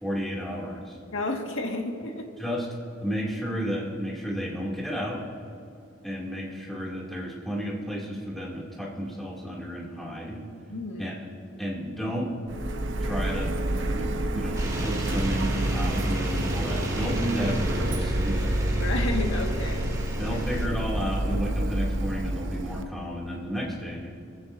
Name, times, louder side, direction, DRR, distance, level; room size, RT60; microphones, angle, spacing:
voice 1, 0.0-1.0 2.4-2.7 3.0-5.2 6.0-10.4 11.0-11.3 11.6-12.3 13.0-18.4 20.2-24.1, equal, ahead, -5 dB, 2.6 m, -32 dB
voice 2, 1.1-2.3 10.7-11.1 18.7-20.4, left 2 dB, 80° left, 2 dB, 1.8 m, -32 dB
Printer, 12.5-22.8, right 1 dB, 70° right, 0.9 m, -28 dB
sound 1, 14.5-20.7, right 1 dB, 20° right, 2.2 m, -32 dB
24.0 x 15.0 x 2.7 m, 2.6 s
head